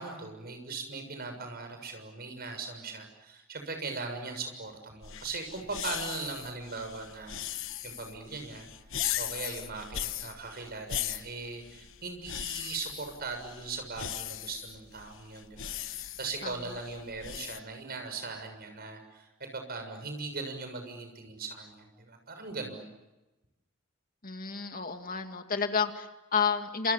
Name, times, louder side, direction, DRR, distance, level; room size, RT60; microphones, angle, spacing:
voice 1, 0.0-8.7 9.2-22.9, right 4 dB, 45° right, 5 dB, 6.8 m, -39 dB
sound 1, 5.0-17.6, left 11 dB, 65° left, 1.1 m, -39 dB
voice 2, 24.2-26.9, left 6 dB, 40° left, 6 dB, 2.3 m, -30 dB
29.5 x 27.5 x 7.3 m, 1.0 s
head